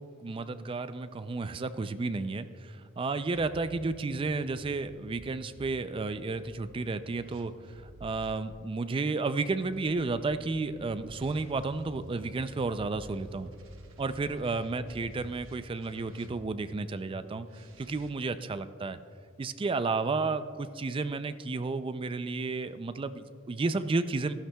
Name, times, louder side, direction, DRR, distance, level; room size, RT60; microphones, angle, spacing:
voice 1, 0.0-13.5 14.0-19.0 19.4-24.3, right 3 dB, 25° right, 12 dB, 0.3 m, -32 dB
sound 1, 3.3-8.4 9.3-16.7 17.4-18.1, equal, 75° right, 1.1 m, -51 dB
14.0 x 11.5 x 2.3 m, 2.3 s
head